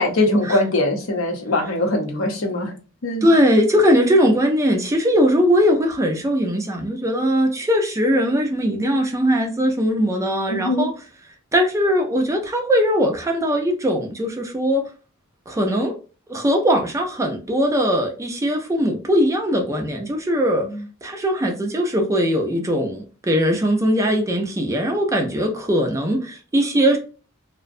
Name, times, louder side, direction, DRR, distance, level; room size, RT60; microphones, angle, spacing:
voice 1, 0.0-2.7 3.0-3.3 10.5-10.9 20.6-20.8, left 1 dB, 65° left, 0.6 m, -21 dB
voice 2, 3.2-10.9 11.5-14.8 15.5-15.9 16.3-20.7 21.0-27.0, equal, 15° right, 0.4 m, -20 dB
2.5 x 2.1 x 2.5 m
head